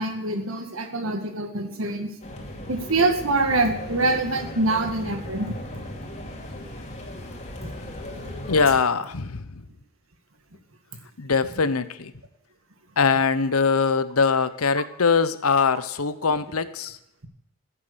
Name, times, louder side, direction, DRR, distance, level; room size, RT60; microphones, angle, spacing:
voice 1, 0.0-2.1 2.7-5.5 7.6-7.7, right 2 dB, 65° right, 5 dB, 2.1 m, -25 dB
sound 1, 2.2-8.8, left 1 dB, 30° left, 2.7 m, -37 dB
voice 2, 8.5-9.6 11.2-12.1 13.0-17.0, left 5 dB, 90° left, 13 dB, 0.9 m, -22 dB
15.0 x 8.7 x 6.9 m, 0.81 s
head